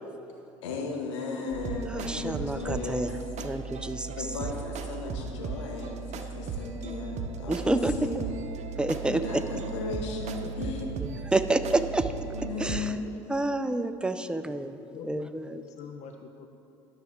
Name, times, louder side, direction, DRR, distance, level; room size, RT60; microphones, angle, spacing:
voice 1, 0.1-0.6 1.3-2.3 5.1-5.9 9.1-9.4 10.2-10.7 12.5-13.2 14.4-16.5, left 6 dB, 50° left, 4 dB, 0.6 m, -46 dB
voice 2, 0.6-3.1 4.2-8.2 9.1-10.9 12.3-13.2, left 3 dB, 85° left, 1 dB, 1.1 m, -36 dB
sound 1, 1.5-12.9, right 5 dB, 50° right, 0.7 m, -37 dB
voice 3, 1.9-3.1 3.4-4.1 7.5-7.9 8.8-9.4 11.0-12.1 12.6-12.9 13.3-14.8 15.0-15.6, right 2 dB, 5° right, 10 dB, 0.4 m, -28 dB
12.0 x 5.6 x 3.6 m, 2.7 s
hypercardioid pair, 65°, 15 cm